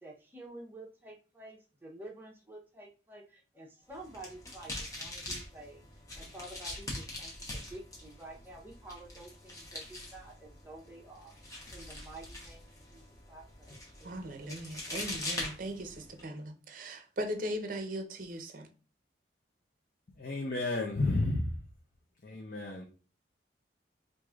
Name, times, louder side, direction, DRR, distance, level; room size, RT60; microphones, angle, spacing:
voice 1, 0.0-5.8 6.1-11.4 11.7-14.5, right 2 dB, 10° right, 0.7 m, -50 dB
sound 1, 3.9-16.2, left 1 dB, 20° left, 0.8 m, -43 dB
voice 2, 14.0-18.7, equal, 45° right, 0.6 m, -39 dB
voice 3, 20.1-21.6 22.2-22.8, left 2 dB, 50° left, 0.5 m, -31 dB
4.6 x 2.6 x 2.4 m
head